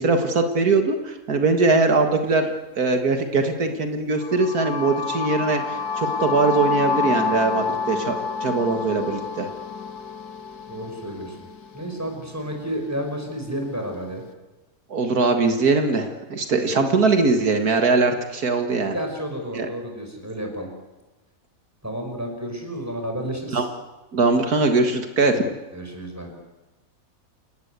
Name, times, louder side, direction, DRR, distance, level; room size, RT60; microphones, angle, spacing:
voice 1, 0.0-9.5 14.9-18.9 19.5-19.7 23.5-23.6 24.1-25.5, right 3 dB, 75° right, 6 dB, 2.2 m, -21 dB
sound 1, 4.2-12.1, left 5 dB, 90° left, 1.9 m, -28 dB
voice 2, 10.7-11.5 11.7-14.2 18.9-20.7 21.8-23.7 25.7-26.3, equal, 10° right, 3 dB, 5.6 m, -31 dB
28.5 x 18.0 x 8.2 m, 1.1 s
omnidirectional pair, 1.6 m